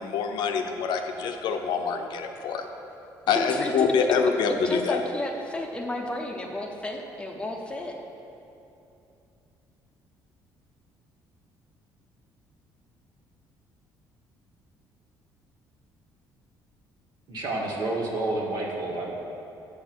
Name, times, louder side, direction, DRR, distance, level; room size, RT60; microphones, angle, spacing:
voice 1, 0.0-2.7 3.3-5.0, left 5 dB, 70° left, 5 dB, 0.7 m, -25 dB
voice 2, 4.5-8.0, left 1 dB, 15° left, 1 dB, 0.7 m, -33 dB
voice 3, 17.3-19.1, right 2 dB, 60° right, -2 dB, 1.8 m, -29 dB
7.6 x 6.1 x 6.4 m, 2.8 s
cardioid pair, 135°, 8 cm